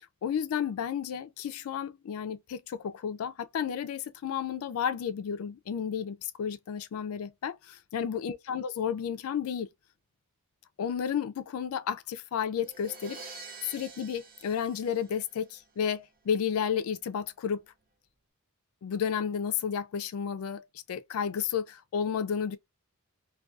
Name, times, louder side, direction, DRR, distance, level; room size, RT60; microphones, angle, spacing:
voice 1, 0.2-9.7 10.8-17.6 18.8-22.6, left 7 dB, 75° left, 0.3 m, -32 dB
Crash cymbal, 12.6-15.6, right 3 dB, 40° right, 0.7 m, -47 dB
2.3 x 2.3 x 2.4 m
head